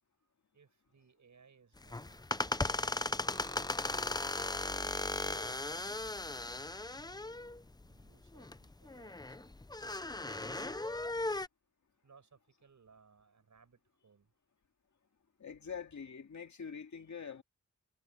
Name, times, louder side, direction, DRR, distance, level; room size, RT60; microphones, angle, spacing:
voice 1, 0.5-4.1 4.9-9.5 10.2-11.1 12.0-14.3, right 5 dB, 70° right, 6.2 m, -65 dB
sound 1, 1.8-11.5, left 2 dB, 15° left, 0.6 m, -37 dB
voice 2, 15.4-17.4, left 6 dB, 70° left, 2.4 m, -45 dB
wide cardioid pair, 90°, 30 cm